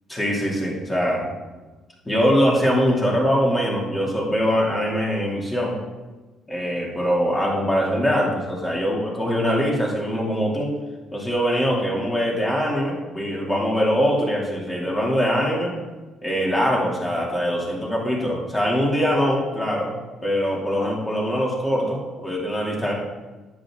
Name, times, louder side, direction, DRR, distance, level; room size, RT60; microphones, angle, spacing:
voice 1, 0.1-1.3 2.1-5.8 6.5-10.7 11.1-15.7 16.2-19.9 20.2-22.9, equal, 20° left, -2 dB, 2.7 m, -22 dB
10.0 x 8.2 x 3.7 m, 1.2 s
supercardioid pair, 75°, 0 cm